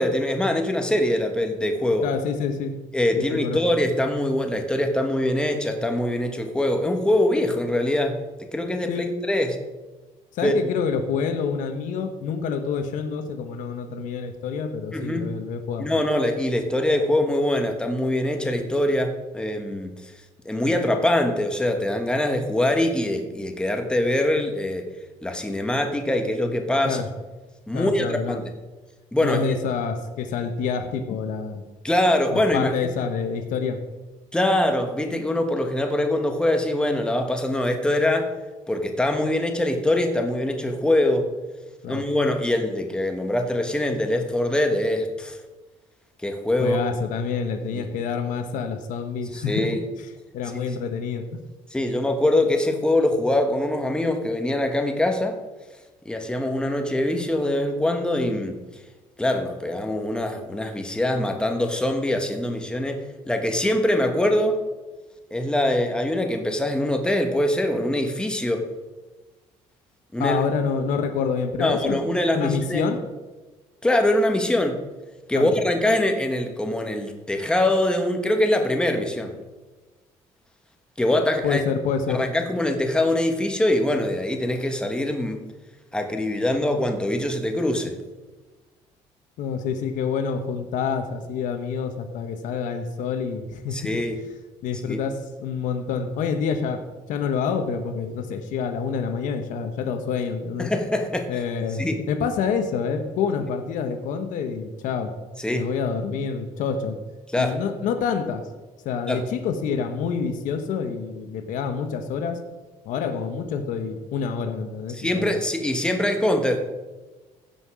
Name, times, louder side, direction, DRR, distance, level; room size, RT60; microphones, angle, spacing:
voice 1, 0.0-2.1 2.9-8.2 8.5-9.6 10.4-10.5 14.9-15.3 15.8-20.1 20.4-24.9 25.2-27.0 27.7-28.4 29.1-29.6 31.8-32.9 34.3-38.3 38.7-41.3 41.9-45.4 46.2-46.8 47.7-47.9 49.3-49.8 51.7-55.3 56.0-58.6 59.2-64.6 65.3-68.7 70.1-70.4 71.6-72.8 73.8-74.8 75.3-79.3 81.0-81.6 82.1-85.4 85.9-88.0 93.7-94.2 94.9-95.0 100.6-101.3 101.8-102.0 105.4-105.6 107.3-107.6 109.1-109.2 114.9-116.6, left 1 dB, 5° left, 4 dB, 1.3 m, -23 dB
voice 2, 2.0-2.7 3.2-3.6 8.9-9.1 10.3-15.9 26.8-27.1 27.7-28.4 29.2-31.6 32.3-33.8 41.8-42.0 46.6-49.8 50.3-51.3 70.2-72.0 72.3-73.0 75.3-75.5 81.4-82.3 89.4-93.8 94.6-96.8 97.1-100.7 101.3-105.1 105.5-107.0 107.4-108.4 108.8-112.4 112.8-115.4, left 6 dB, 75° left, 8 dB, 1.2 m, -27 dB
16.0 x 5.7 x 4.9 m, 1.2 s
cardioid pair, 110°, 13 cm